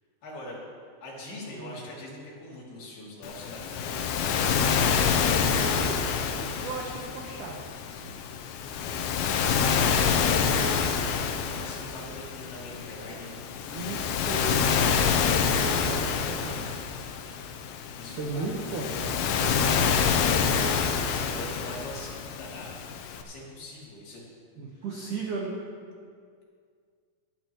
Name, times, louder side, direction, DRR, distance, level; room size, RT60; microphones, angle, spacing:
voice 1, 0.2-0.6 1.0-4.5 9.1-13.5 18.0-18.7 20.4-22.9 23.2-24.3 24.7-24.8, left 1 dB, 60° left, -5 dB, 4.4 m, -42 dB
Waves surf, 3.2-23.2, left 6 dB, 75° left, 2.8 m, -27 dB
voice 2, 5.5-6.0 6.3-8.4 13.7-16.9 17.1-17.4 18.2-19.9 24.6-25.5, right 3 dB, 75° right, -2 dB, 1.8 m, -37 dB
24.5 x 10.5 x 3.1 m, 2.1 s
omnidirectional pair, 5.4 m